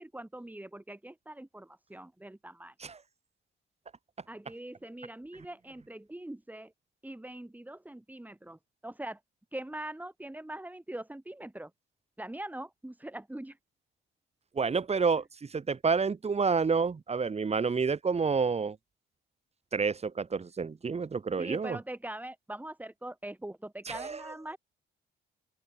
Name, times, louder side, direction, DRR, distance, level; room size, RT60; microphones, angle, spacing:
voice 1, 0.0-2.7 4.3-6.7 7.0-9.2 9.5-11.7 12.2-13.6 21.4-24.6, right 1 dB, 10° right, 3.9 m, -42 dB
voice 2, 14.6-15.2 15.5-18.8 19.7-21.8 23.9-24.2, right 5 dB, 30° right, 2.0 m, -29 dB
open air
cardioid pair, 90°, 20 cm